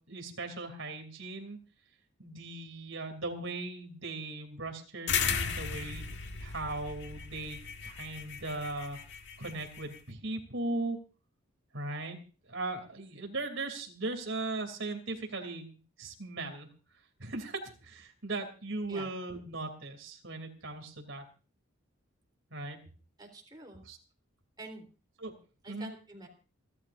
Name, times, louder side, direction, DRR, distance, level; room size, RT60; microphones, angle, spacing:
voice 1, 0.1-1.6 2.2-6.0 6.4-9.0 9.4-11.0 11.7-12.2 12.4-16.7 17.2-21.2 22.5-22.8 23.8-24.0 25.2-25.3 25.7-25.9, right 2 dB, 65° right, 5 dB, 3.1 m, -38 dB
sound 1, 5.1-10.0, left 6 dB, 55° left, 1.8 m, -36 dB
voice 2, 23.2-23.8 24.6-24.9 25.6-26.3, right 2 dB, 20° right, 2 dB, 3.6 m, -47 dB
29.0 x 12.0 x 2.6 m, 0.36 s
head